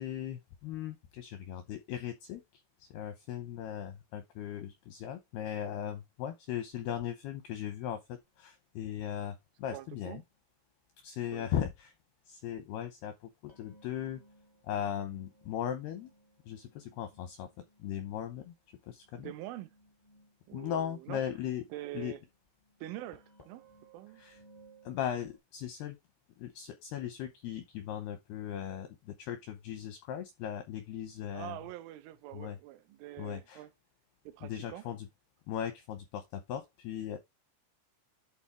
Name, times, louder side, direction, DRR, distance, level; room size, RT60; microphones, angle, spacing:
voice 1, 0.0-2.4 2.8-10.2 11.0-11.9 12.3-13.1 13.4-14.2 14.6-16.1 16.5-17.5 17.8-18.5 18.9-19.3 20.5-21.6 21.9-22.1 24.2-24.4 24.9-26.0 26.4-31.6 32.3-32.6 33.2-33.6 34.4-35.1 35.5-37.2, left 10 dB, 85° left, 2.3 m, -38 dB
voice 2, 9.7-10.2 11.3-11.5 19.2-19.7 20.5-21.2 21.7-22.2 22.8-23.6 23.9-24.2 31.3-33.7 34.3-34.9, right 15 dB, 85° right, 3.1 m, -44 dB
sound 1, 10.3-10.4 13.5-25.4, right 2 dB, 25° left, 0.6 m, -63 dB
11.0 x 4.2 x 3.1 m
omnidirectional pair, 5.7 m